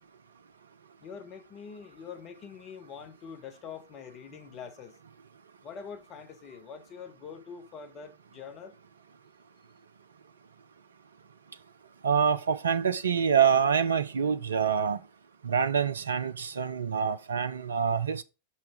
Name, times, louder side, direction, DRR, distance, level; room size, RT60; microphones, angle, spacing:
voice 1, 1.0-5.0 5.6-8.7, left 6 dB, 35° left, 1.1 m, -44 dB
voice 2, 12.0-15.0 15.4-18.2, right 7 dB, 70° right, 0.4 m, -26 dB
5.6 x 5.6 x 4.8 m
figure-of-eight pair, 90°, 0 cm